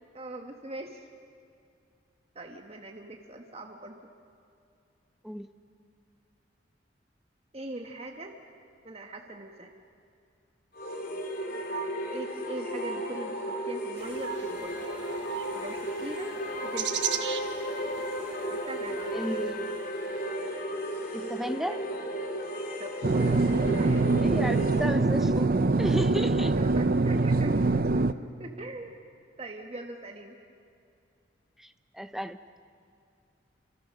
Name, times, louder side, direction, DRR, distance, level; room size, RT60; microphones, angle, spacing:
voice 1, 0.1-1.0 2.3-4.0 7.5-8.4 8.8-9.7 11.7-14.7 15.5-17.0 18.5-19.5 22.8-23.4 23.7-24.1 24.5-24.6 26.6-28.1 28.4-28.9 29.4-30.4, right 2 dB, 35° right, 3 dB, 1.2 m, -41 dB
sound 1, 10.7-24.9, right 1 dB, 50° left, 3.0 m, -34 dB
sound 2, 14.0-20.2, right 9 dB, 70° right, 1.2 m, -39 dB
voice 2, 19.1-19.7 21.1-21.8 24.2-25.5 25.8-26.5 31.6-31.7 31.9-32.4, equal, ahead, 10 dB, 0.7 m, -33 dB
sound 3, 23.0-28.1, right 3 dB, 50° right, 0.6 m, -24 dB
28.0 x 26.0 x 6.4 m, 2.5 s
head